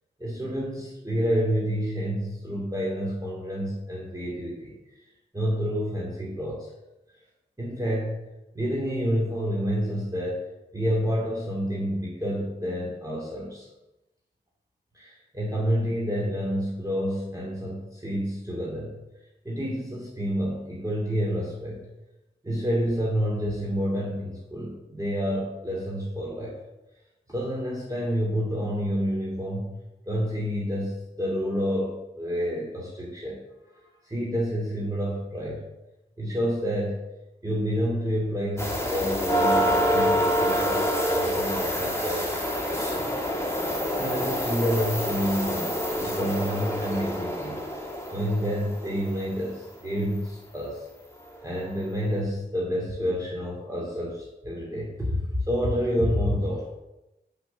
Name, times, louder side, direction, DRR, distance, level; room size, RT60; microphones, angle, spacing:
voice 1, 0.2-4.7 5.3-6.7 7.6-8.3 8.5-10.4 10.7-13.7 14.9-19.0 19.4-21.9 22.4-26.5 27.3-29.8 30.1-33.4 33.7-35.6 36.2-37.0 37.4-43.2 44.0-50.9 51.4-55.2 55.5-56.7, equal, 20° right, -4 dB, 2.5 m, -29 dB
sound 1, 38.6-49.2 51.2-51.3 51.9-52.0, equal, 15° left, 2.2 m, -27 dB
8.1 x 6.2 x 6.8 m, 0.96 s
wide cardioid pair, 50°, 19 cm